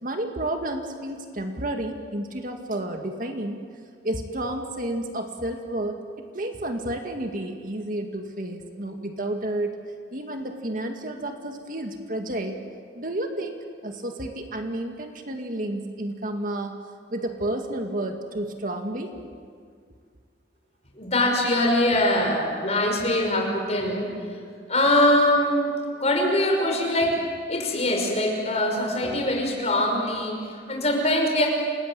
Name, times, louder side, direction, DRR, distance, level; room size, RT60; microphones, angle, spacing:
voice 1, 0.0-3.6 4.0-6.0 6.3-9.8 10.1-12.6 12.9-13.6 13.8-16.7 17.1-19.2, right 1 dB, 45° right, 4 dB, 2.0 m, -31 dB
voice 2, 21.0-24.1 24.7-27.2 27.5-31.5, left 1 dB, 35° left, 1 dB, 5.7 m, -23 dB
28.5 x 20.0 x 9.0 m, 2.1 s
head